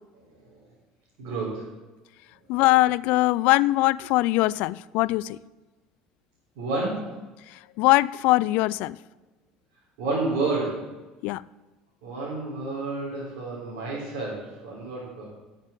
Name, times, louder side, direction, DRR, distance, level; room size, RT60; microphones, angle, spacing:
voice 1, 0.1-0.6 1.2-1.7 6.6-7.3 10.0-10.9 12.0-15.3, right 3 dB, 75° right, -7 dB, 3.9 m, -30 dB
voice 2, 2.5-5.4 7.8-9.0 11.2-11.4, left 19 dB, 70° left, 21 dB, 0.3 m, -21 dB
11.0 x 6.6 x 7.3 m, 1.2 s
supercardioid pair, 115°, 3 cm